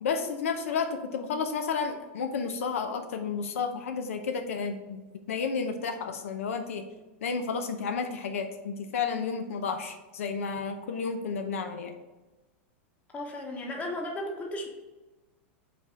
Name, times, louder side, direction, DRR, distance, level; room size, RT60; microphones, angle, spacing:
voice 1, 0.0-6.8 7.2-12.0, left 5 dB, 90° left, 6 dB, 0.7 m, -32 dB
voice 2, 13.1-14.7, left 1 dB, 20° left, 1 dB, 1.2 m, -35 dB
5.2 x 4.2 x 4.7 m, 1.1 s
supercardioid pair, 140°, 7 cm